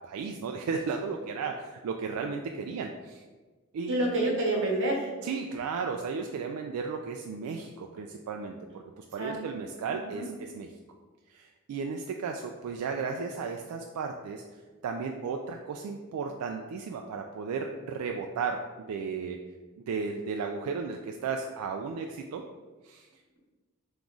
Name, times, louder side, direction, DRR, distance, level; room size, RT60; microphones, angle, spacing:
voice 1, 0.0-3.2 3.7-4.0 5.2-10.7 11.3-19.4 19.8-22.4 22.8-23.1, right 5 dB, 85° right, 3 dB, 0.3 m, -34 dB
voice 2, 3.9-5.1 9.2-9.4 10.1-10.3, right 1 dB, 60° right, -1 dB, 1.0 m, -27 dB
3.6 x 3.0 x 3.8 m, 1.3 s
head